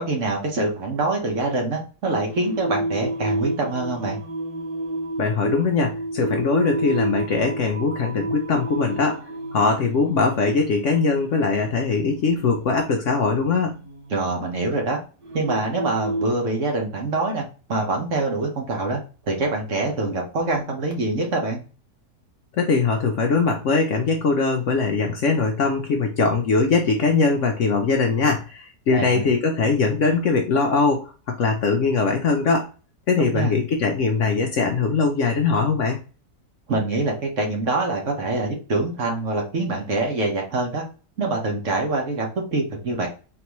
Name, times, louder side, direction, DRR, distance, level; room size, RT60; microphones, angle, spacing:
voice 1, 0.0-4.2 14.1-15.0 15.3-17.4 17.7-19.0 19.3-21.6 28.9-29.3 33.2-33.5 36.7-40.8 41.2-43.1, right 2 dB, 50° right, 1 dB, 1.3 m, -25 dB
Singing, 2.3-16.3, right 1 dB, 30° right, 0.8 m, -31 dB
voice 2, 5.2-9.2 9.5-13.8 22.6-32.7 33.1-36.0, left 4 dB, 60° left, 2 dB, 0.8 m, -21 dB
3.9 x 3.3 x 3.0 m, 0.35 s
omnidirectional pair, 1.7 m